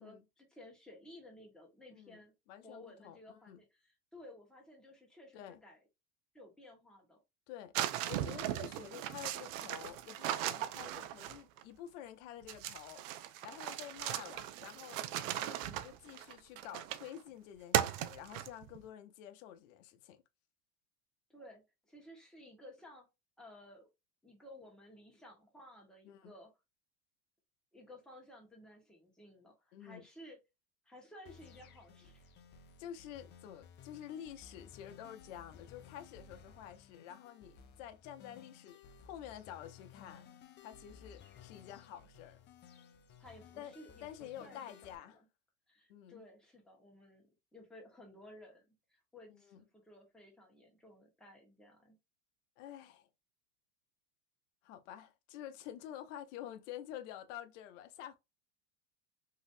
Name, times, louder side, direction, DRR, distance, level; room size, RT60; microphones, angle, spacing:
voice 1, 0.0-2.3 2.6-5.8 6.3-7.2 21.3-23.1 23.4-23.9 24.2-26.5 27.7-30.4 30.8-32.3 43.2-44.1 44.4-44.8 45.1-45.2 45.7-52.0, left 1 dB, ahead, 1.3 m, -56 dB
voice 2, 1.9-3.6 5.3-5.6 7.5-7.7 8.1-13.0 13.4-15.0 15.4-20.2 26.0-26.3 29.7-30.1 32.8-40.3 40.6-42.4 43.6-43.7 44.0-45.2 45.9-46.2 49.3-49.6 52.6-53.1 54.6-58.2, left 10 dB, 65° left, 0.7 m, -49 dB
sound 1, 7.8-11.6 12.5-17.2 17.7-18.8, right 12 dB, 70° right, 0.6 m, -38 dB
sound 2, 31.3-45.0, left 7 dB, 30° left, 0.4 m, -58 dB
3.0 x 2.9 x 2.6 m
supercardioid pair, 115°, 40 cm